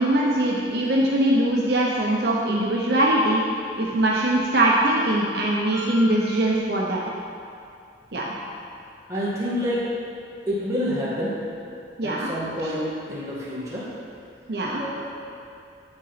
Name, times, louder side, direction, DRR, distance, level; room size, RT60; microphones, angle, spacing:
voice 1, 0.0-3.4 3.8-7.0 8.1-8.3 12.0-12.3 14.5-14.8, right 1 dB, 60° right, -4 dB, 0.8 m, -22 dB
voice 2, 5.7-6.2 9.1-9.9 10.5-11.4 12.0-13.9 14.8-15.1, equal, 15° right, -9 dB, 2.0 m, -28 dB
9.7 x 3.9 x 5.8 m, 2.5 s
head